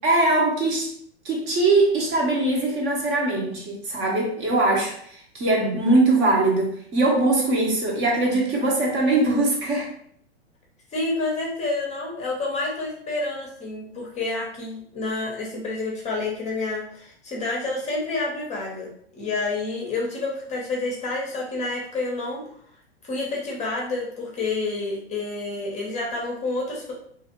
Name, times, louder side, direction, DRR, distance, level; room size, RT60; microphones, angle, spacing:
voice 1, 0.0-0.9 1.2-9.9, right 2 dB, 35° right, -2 dB, 0.8 m, -21 dB
voice 2, 10.9-18.9 19.1-22.4 23.0-26.9, left 3 dB, 20° left, -2 dB, 0.7 m, -29 dB
2.6 x 2.4 x 2.8 m, 0.64 s
hypercardioid pair, 120°, 33 cm